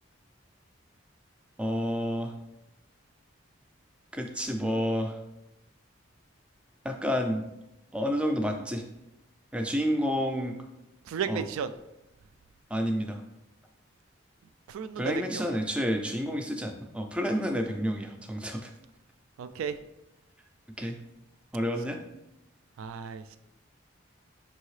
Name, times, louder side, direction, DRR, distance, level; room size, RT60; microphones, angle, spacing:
voice 1, 1.6-2.4 4.1-5.2 6.8-7.5 7.9-8.8 9.5-10.6 11.3-11.4 12.7-13.2 15.0-18.7 20.8-21.0 21.5-22.0, equal, 5° right, 4 dB, 0.3 m, -29 dB
voice 2, 11.0-11.7 14.7-15.5 19.4-19.8 22.8-23.4, right 7 dB, 85° right, 12 dB, 0.3 m, -34 dB
5.5 x 2.7 x 3.1 m, 0.92 s
head